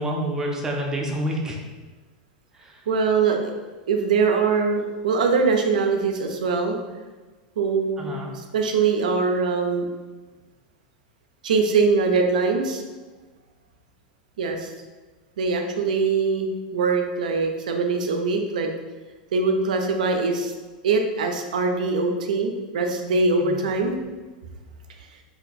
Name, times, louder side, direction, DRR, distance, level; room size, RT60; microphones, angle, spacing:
voice 1, 0.0-1.6 2.6-2.7 8.0-8.3 23.4-23.6, equal, 15° right, -1 dB, 0.6 m, -28 dB
voice 2, 2.9-3.5 3.9-6.8 7.6-9.8 11.4-12.8 14.4-14.7 15.4-18.7 19.3-20.5 20.8-24.0, right 4 dB, 85° right, 4 dB, 0.4 m, -22 dB
2.6 x 2.2 x 3.9 m, 1.3 s
hypercardioid pair, 120°, 4 cm